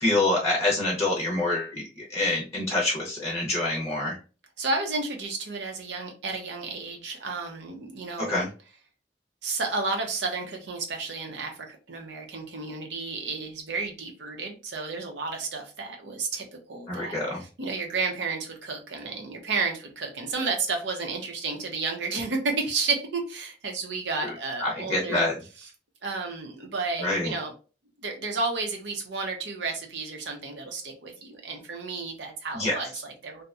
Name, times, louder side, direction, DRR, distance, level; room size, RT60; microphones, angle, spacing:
voice 1, 0.0-4.2 8.3-8.5 16.9-17.4 24.2-24.3 24.6-25.3 27.0-27.3 32.5-32.8, left 2 dB, 15° left, -3 dB, 0.6 m, -26 dB
voice 2, 4.6-8.5 9.4-25.2 25.6-25.7 26.0-27.5 28.0-33.4, right 3 dB, 80° right, 3 dB, 0.7 m, -32 dB
2.7 x 2.1 x 2.3 m, 0.35 s
head